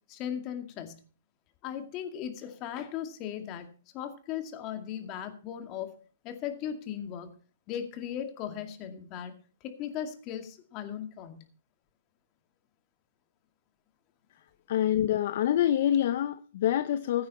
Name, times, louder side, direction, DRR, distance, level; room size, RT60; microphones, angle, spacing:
voice 1, 0.1-1.0 1.6-3.7 3.9-5.9 6.2-7.3 7.7-9.3 9.6-11.4, left 9 dB, 35° left, 7 dB, 2.2 m, -37 dB
voice 2, 14.7-17.3, left 11 dB, 55° left, 13 dB, 0.6 m, -26 dB
15.5 x 9.5 x 4.2 m, 0.39 s
hypercardioid pair, 135°, 0 cm